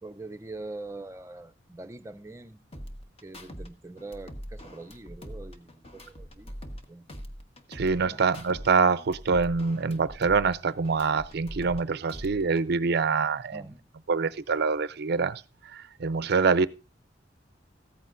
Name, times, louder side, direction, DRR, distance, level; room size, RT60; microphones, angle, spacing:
voice 1, 0.0-2.6 3.2-6.6 6.9-7.1 8.0-8.2 13.5-13.8, right 2 dB, 15° right, 0.6 m, -43 dB
sound 1, 2.7-3.7 4.0-6.8 7.1-8.7 9.0-11.8 12.1-12.7, equal, 35° left, 1.3 m, -42 dB
voice 2, 7.7-13.6 14.1-16.7, right 5 dB, 60° right, 0.5 m, -25 dB
15.0 x 13.5 x 2.6 m
head